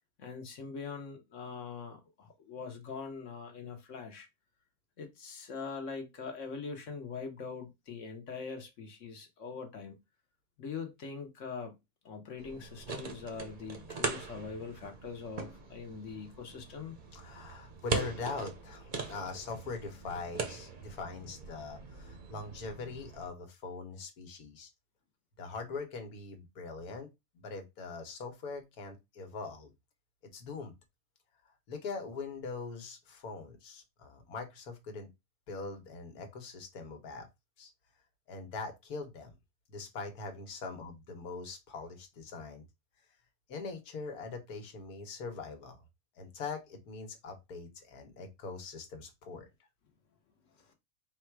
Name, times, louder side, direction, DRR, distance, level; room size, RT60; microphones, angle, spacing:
voice 1, 0.2-4.3 5.0-10.0 10.6-11.7 12.0-16.9 50.6-50.7, left 5 dB, 60° left, 1.2 m, -42 dB
sound 1, 12.4-23.3, right 4 dB, 40° right, 0.7 m, -41 dB
voice 2, 17.1-24.7 25.4-27.1 27.3-29.7 30.3-30.7 31.7-35.1 35.5-37.3 37.6-37.7 38.3-39.3 39.7-42.6 43.5-45.8 46.2-49.5, left 4 dB, 85° left, 1.5 m, -42 dB
4.0 x 2.4 x 4.5 m
omnidirectional pair, 1.6 m